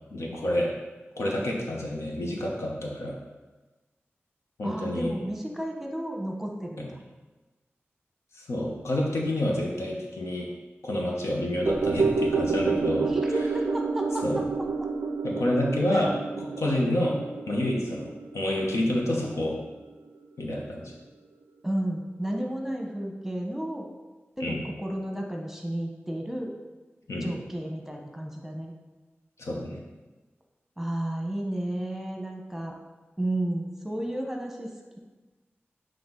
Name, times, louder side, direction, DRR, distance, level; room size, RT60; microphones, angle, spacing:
voice 1, 0.1-0.7 1.2-3.2 4.6-5.1 6.8-6.9 8.3-10.5 10.8-13.1 14.2-14.4 15.2-17.2 17.5-19.6 20.4-20.9 24.4-24.6 27.1-27.3 29.4-29.8, left 1 dB, 85° left, -2 dB, 1.1 m, -28 dB
voice 2, 4.6-7.0 13.1-14.4 21.6-23.9 24.4-26.5 27.2-28.7 30.8-32.7 33.2-34.7, right 1 dB, 5° right, 1 dB, 1.1 m, -32 dB
sound 1, 11.7-20.1 20.4-20.5, right 4 dB, 55° right, 0.4 m, -29 dB
7.8 x 3.3 x 3.9 m, 1.2 s
cardioid pair, 55°, 5 cm